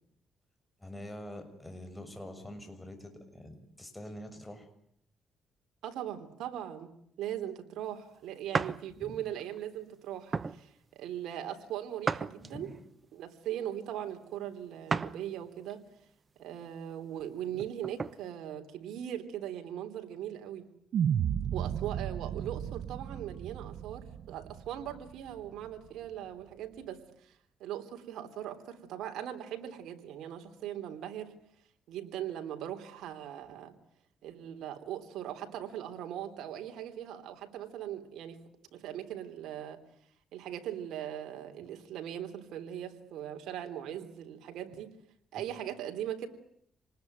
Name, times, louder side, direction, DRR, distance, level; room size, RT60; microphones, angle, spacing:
voice 1, 0.8-4.7 8.9-9.2 12.4-12.8 45.3-45.5, left 1 dB, 10° left, 6 dB, 6.7 m, -45 dB
voice 2, 5.8-6.9 7.2-12.7 13.1-15.8 16.4-20.7 21.5-31.3 31.9-33.7 34.2-38.4 38.7-39.8 40.3-44.9 45.3-46.3, right 11 dB, 85° right, 6 dB, 3.4 m, -40 dB
sound 1, 8.5-8.8 9.4-9.6 10.3-10.6 12.0-12.8 14.9-15.2 15.7-15.8 17.5-18.2, right 4 dB, 35° right, 1.1 m, -33 dB
sound 2, 20.9-25.3, right 9 dB, 65° right, 1.1 m, -33 dB
28.0 x 20.0 x 9.5 m, 0.71 s
cardioid pair, 90°, 0 cm